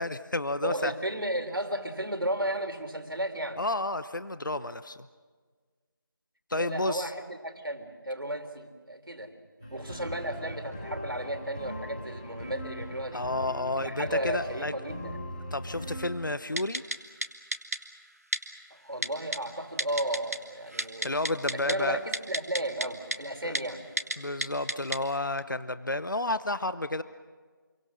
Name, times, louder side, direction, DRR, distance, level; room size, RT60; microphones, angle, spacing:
voice 1, 0.0-0.9 3.6-5.1 6.5-7.1 13.1-14.7 15.5-16.8 21.0-22.0 23.4-23.6 24.2-27.0, left 2 dB, 60° left, 13 dB, 0.8 m, -31 dB
voice 2, 0.6-3.6 6.5-9.3 9.7-13.3 13.8-15.2 18.7-21.3 21.7-23.8, right 1 dB, 75° right, 6 dB, 3.6 m, -34 dB
sound 1, 9.6-16.1, equal, 5° right, 4.5 m, -40 dB
Typing, 16.6-17.0 17.2-17.3 17.5-17.8 18.3-18.4 19.0-19.4 19.8-20.4 20.7-21.7 22.1-22.9 23.1-23.2 23.6-23.7 24.0-24.2 24.4-25.0 25.4-25.5, right 1 dB, 40° right, 1.5 m, -30 dB
28.5 x 23.5 x 6.4 m, 1.5 s
figure-of-eight pair, 180°, 12 cm